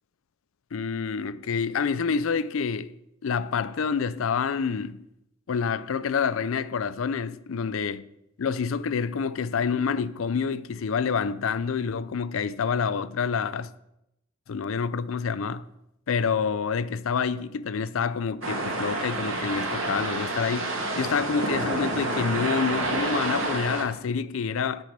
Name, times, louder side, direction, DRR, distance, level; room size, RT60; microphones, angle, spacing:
voice 1, 0.7-2.9 3.2-5.1 5.5-8.0 8.4-13.7 14.5-15.6 16.1-24.8, left 6 dB, 85° left, 0.4 m, -27 dB
sound 1, 18.4-23.8, right 2 dB, 80° right, 2.2 m, -29 dB
10.0 x 6.4 x 5.1 m
head